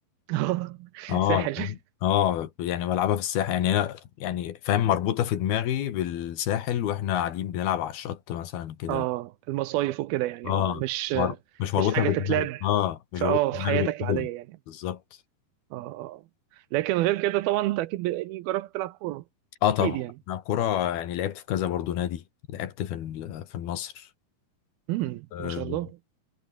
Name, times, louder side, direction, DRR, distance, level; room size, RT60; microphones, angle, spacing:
voice 1, 0.3-1.7 8.9-11.4 11.8-12.7 13.2-14.4 15.7-16.2 16.7-19.2 19.8-20.1 24.9-26.0, right 16 dB, 75° right, 2.4 m, -28 dB
voice 2, 1.1-1.7 2.0-9.1 10.5-10.8 11.2-11.3 11.6-14.3 14.7-15.0 19.6-20.0 20.3-22.2 22.5-24.0 25.3-25.8, left 11 dB, 65° left, 3.7 m, -27 dB
omnidirectional pair, 4.9 m